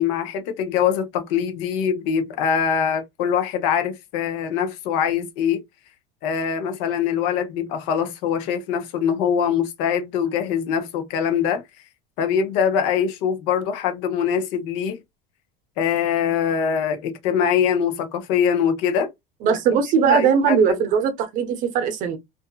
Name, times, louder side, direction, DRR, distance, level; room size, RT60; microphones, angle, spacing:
voice 1, 0.0-5.6 6.2-11.6 12.2-15.0 15.8-19.1 20.0-20.8, left 7 dB, 65° left, 0.8 m, -23 dB
voice 2, 19.4-22.2, right 7 dB, 40° right, 0.6 m, -20 dB
2.6 x 2.5 x 2.2 m
cardioid pair, 145°, 19 cm